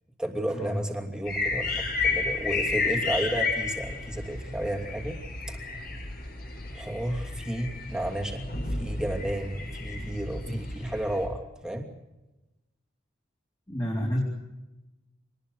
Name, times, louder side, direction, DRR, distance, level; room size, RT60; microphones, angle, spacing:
voice 1, 0.2-5.2 5.5-5.8 6.7-11.9, right 1 dB, 5° right, 1 dB, 2.8 m, -32 dB
sound 1, 1.3-11.2, left 3 dB, 50° left, 6.0 m, -32 dB
voice 2, 13.7-14.2, equal, 20° left, -3 dB, 4.0 m, -31 dB
25.0 x 20.0 x 6.6 m, 1.0 s
head